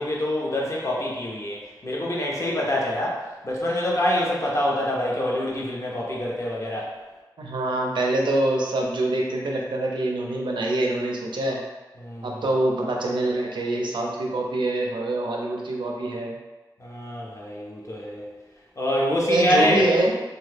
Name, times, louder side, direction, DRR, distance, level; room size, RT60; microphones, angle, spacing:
voice 1, 0.0-6.9 12.0-12.4 16.8-18.2 18.8-19.8, left 1 dB, 40° left, -4 dB, 0.7 m, -26 dB
voice 2, 7.4-11.6 12.2-16.3 19.3-20.1, right 2 dB, 85° right, -1 dB, 0.5 m, -25 dB
2.9 x 2.3 x 3.3 m, 1.2 s
wide cardioid pair, 110°, 8 cm